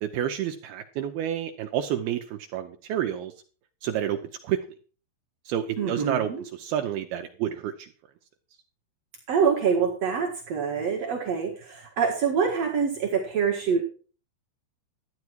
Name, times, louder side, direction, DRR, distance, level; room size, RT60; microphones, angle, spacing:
voice 1, 0.0-3.3 3.8-4.6 5.5-7.9, right 10 dB, 85° right, 5 dB, 2.2 m, -29 dB
voice 2, 5.8-6.4 9.3-13.8, right 6 dB, 65° right, 0 dB, 1.6 m, -25 dB
13.0 x 9.5 x 4.6 m, 0.38 s
omnidirectional pair, 5.5 m